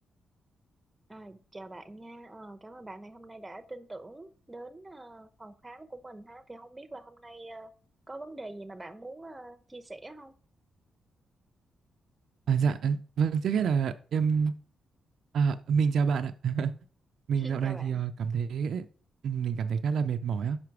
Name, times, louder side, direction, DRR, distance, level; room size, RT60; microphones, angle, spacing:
voice 1, 1.1-7.7 8.1-10.3 17.3-18.0, right 2 dB, 15° right, 0.8 m, -45 dB
voice 2, 12.5-14.5 15.3-16.8 17.3-18.9 19.2-20.6, right 6 dB, 70° right, 0.4 m, -27 dB
5.9 x 5.6 x 4.7 m
cardioid pair, 85°, 0 cm